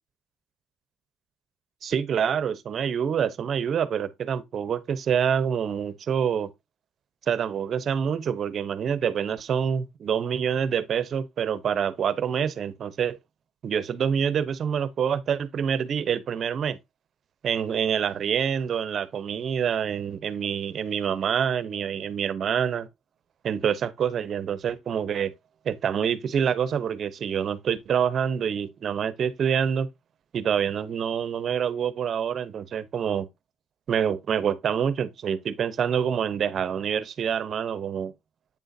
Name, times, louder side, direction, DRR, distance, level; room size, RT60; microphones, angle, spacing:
voice 1, 1.8-6.5 7.3-13.2 13.6-16.8 17.4-22.9 23.4-25.3 25.6-29.9 30.3-33.3 33.9-38.1, right 8 dB, 60° right, 0.8 m, -26 dB
8.7 x 6.3 x 2.7 m
cardioid pair, 85°, 0 cm